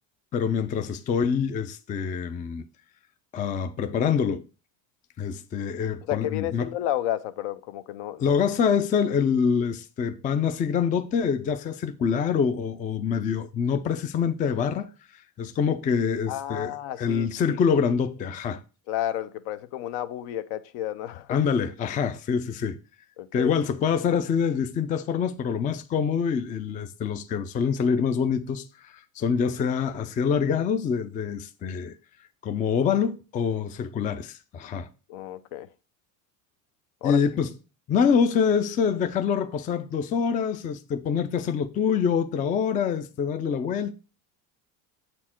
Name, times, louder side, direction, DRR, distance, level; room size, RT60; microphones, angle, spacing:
voice 1, 0.3-2.7 3.3-4.5 5.2-6.7 8.2-14.9 15.4-18.6 21.3-22.8 23.3-32.0 32.4-34.9 37.0-37.5 37.9-43.9, left 6 dB, 20° left, 0.3 m, -25 dB
voice 2, 6.1-8.3 16.3-17.6 18.9-21.4 23.2-23.5 35.1-35.7 37.0-37.2, left 12 dB, 65° left, 0.8 m, -31 dB
7.3 x 4.4 x 4.4 m
supercardioid pair, 125°, 42 cm